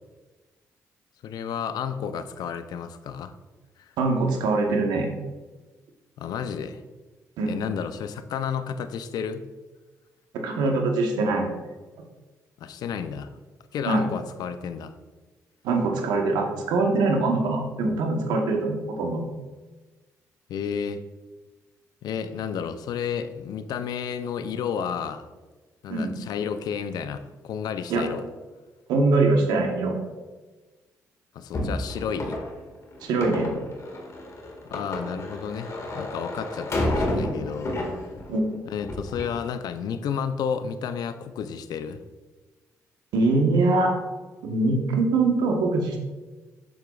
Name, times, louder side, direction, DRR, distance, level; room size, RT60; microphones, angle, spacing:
voice 1, 1.2-3.3 6.2-6.8 7.5-9.5 12.6-13.3 13.7-14.9 20.5-21.0 22.0-25.3 25.8-28.2 31.3-32.4 34.7-37.7 38.7-42.0, left 7 dB, 70° left, 11 dB, 0.5 m, -31 dB
voice 2, 4.0-5.1 7.4-7.5 10.4-11.5 13.9-14.0 15.6-19.2 25.9-26.1 27.9-28.1 28.9-30.0 33.0-33.5 38.3-38.5 43.1-43.9 44.4-46.0, right 3 dB, 80° right, 3 dB, 1.1 m, -23 dB
sound 1, 31.5-38.4 38.7-39.4, left 1 dB, 45° left, 1.8 m, -31 dB
7.8 x 6.7 x 2.4 m, 1.2 s
supercardioid pair, 60°, 7 cm